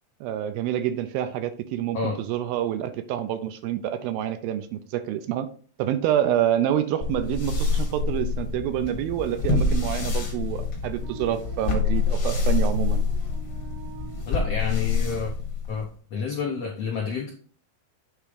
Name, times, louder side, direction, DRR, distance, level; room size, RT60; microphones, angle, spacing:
voice 1, 0.2-5.5 5.8-13.1, right 11 dB, 80° right, 10 dB, 2.3 m, -27 dB
sound 1, 7.0-15.9, left 4 dB, 50° left, 1.5 m, -26 dB
sound 2, 10.8-15.2, right 4 dB, 65° right, 1.1 m, -47 dB
voice 2, 14.3-15.3 15.7-17.3, left 5 dB, 75° left, 0 dB, 1.4 m, -29 dB
8.4 x 3.6 x 5.0 m, 0.43 s
omnidirectional pair, 4.4 m